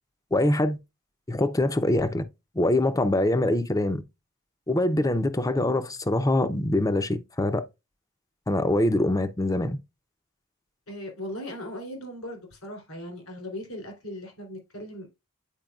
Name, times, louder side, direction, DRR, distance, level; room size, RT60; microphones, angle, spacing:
voice 1, 0.3-0.8 1.3-2.2 2.5-4.0 4.7-7.6 8.5-9.8, left 1 dB, 15° left, 0.6 m, -24 dB
voice 2, 10.9-15.1, left 1 dB, 80° left, 3.3 m, -38 dB
9.0 x 4.6 x 2.3 m
head